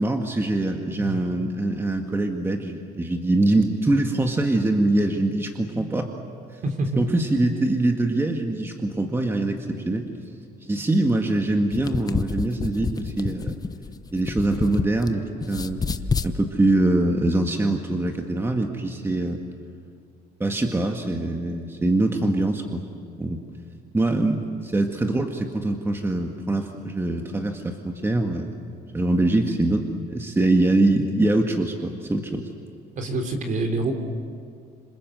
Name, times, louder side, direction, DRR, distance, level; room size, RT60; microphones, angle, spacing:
voice 1, 0.0-6.1 7.0-10.1 10.6-13.6 14.1-15.8 16.2-19.4 20.4-22.8 23.2-23.4 23.9-28.6 28.9-32.4, right 2 dB, 15° right, 3 dB, 1.9 m, -23 dB
voice 2, 6.6-7.0 33.0-33.9, right 2 dB, 50° right, 5 dB, 3.8 m, -26 dB
sound 1, 11.6-15.1 15.4-16.3, left 4 dB, 20° left, 1.0 m, -28 dB
27.0 x 26.5 x 7.9 m, 2.3 s
cardioid pair, 110°, 17 cm